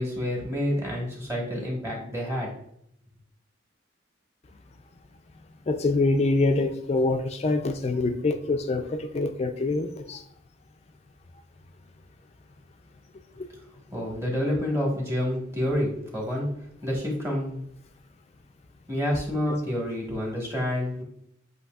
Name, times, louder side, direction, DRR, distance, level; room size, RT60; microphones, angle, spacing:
voice 1, 0.0-2.5 13.9-16.5 16.8-17.6 18.9-21.0, left 1 dB, 15° right, -2 dB, 1.3 m, -28 dB
voice 2, 5.7-10.2 13.4-13.5, left 2 dB, 35° left, 6 dB, 0.3 m, -25 dB
7.8 x 2.8 x 2.3 m, 0.71 s
head